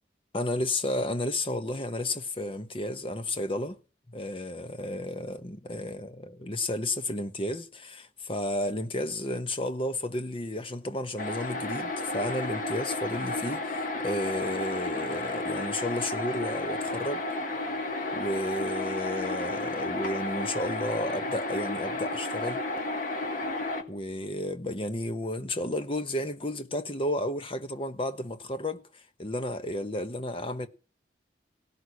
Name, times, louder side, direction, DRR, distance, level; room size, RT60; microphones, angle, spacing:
voice 1, 0.3-3.8 4.1-17.2 18.1-22.6 23.9-30.7, left 1 dB, 30° left, 1.1 m, -32 dB
sound 1, 11.2-23.8, left 2 dB, 50° left, 1.7 m, -32 dB
17.0 x 6.4 x 9.8 m
head